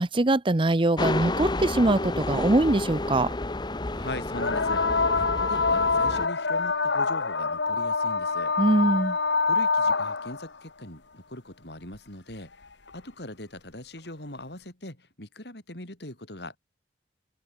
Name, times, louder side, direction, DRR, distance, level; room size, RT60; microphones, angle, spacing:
voice 1, 0.0-3.3 8.6-9.2, right 2 dB, 30° right, 0.8 m, -22 dB
sound 1, 1.0-6.3, left 2 dB, 25° left, 1.0 m, -30 dB
voice 2, 3.9-8.5 9.5-12.5 12.9-16.6, left 1 dB, 70° left, 6.6 m, -40 dB
sound 2, 4.3-10.5 11.9-12.0 12.9-13.0, left 4 dB, 90° left, 1.9 m, -25 dB
open air
head